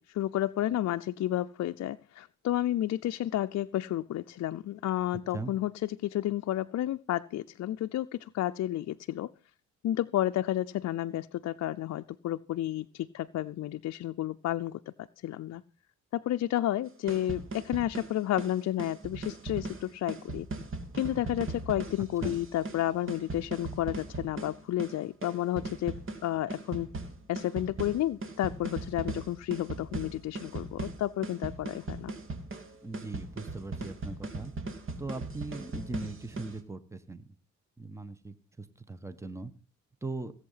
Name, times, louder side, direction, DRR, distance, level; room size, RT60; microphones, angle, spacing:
voice 1, 0.0-9.3 9.8-14.9 15.2-15.6 16.1-20.5 21.0-26.0 26.2-26.9 27.3-32.1, left 13 dB, 60° left, 9 dB, 0.6 m, -31 dB
sound 1, 16.9-36.6, right 3 dB, 45° right, 2.8 m, -39 dB
voice 2, 32.8-34.5 35.0-37.2 37.8-39.5 40.0-40.3, right 3 dB, 10° right, 12 dB, 1.3 m, -40 dB
17.5 x 8.0 x 5.7 m, 0.37 s
cardioid pair, 90°, 30 cm